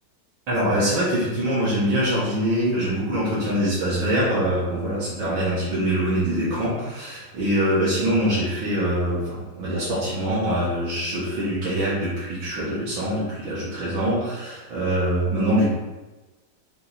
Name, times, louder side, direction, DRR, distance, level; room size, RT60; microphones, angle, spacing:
voice 1, 0.5-15.7, right 1 dB, 85° right, -10 dB, 2.5 m, -24 dB
5.4 x 5.1 x 4.1 m, 1.1 s
omnidirectional pair, 2.1 m